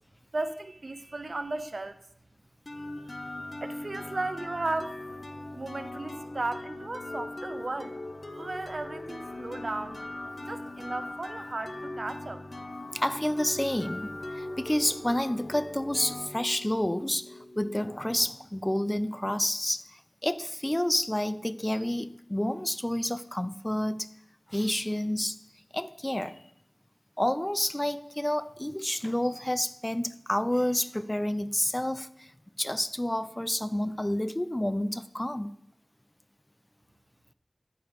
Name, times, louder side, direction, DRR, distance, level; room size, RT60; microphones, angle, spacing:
voice 1, 0.3-2.0 3.6-5.2 5.5-8.0 8.3-10.1 10.4-12.4, right 2 dB, 60° right, 0.6 m, -35 dB
sound 1, 2.7-18.3, left 2 dB, 50° left, 0.7 m, -40 dB
voice 2, 12.9-24.1 24.5-25.4 25.7-26.4 27.2-32.3 32.6-35.5, left 1 dB, 20° left, 0.4 m, -29 dB
9.9 x 5.1 x 4.8 m
wide cardioid pair, 60°, 0 cm